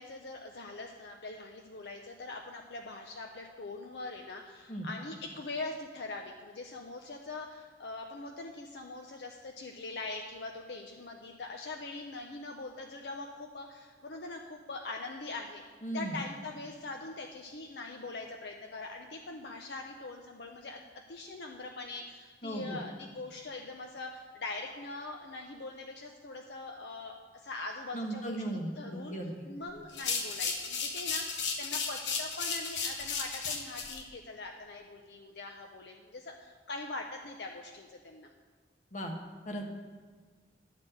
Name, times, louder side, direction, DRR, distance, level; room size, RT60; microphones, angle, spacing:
voice 1, 0.0-15.6 15.9-20.8 21.1-28.4 28.8-29.2 29.5-38.3, left 3 dB, 70° left, 2 dB, 0.6 m, -42 dB
voice 2, 15.8-16.2 22.4-22.8 27.9-29.5 38.9-39.1 39.4-39.6, right 1 dB, 45° left, 2 dB, 1.2 m, -37 dB
sound 1, 29.9-34.0, left 5 dB, 90° left, 1.1 m, -34 dB
11.5 x 4.2 x 7.7 m, 1.5 s
head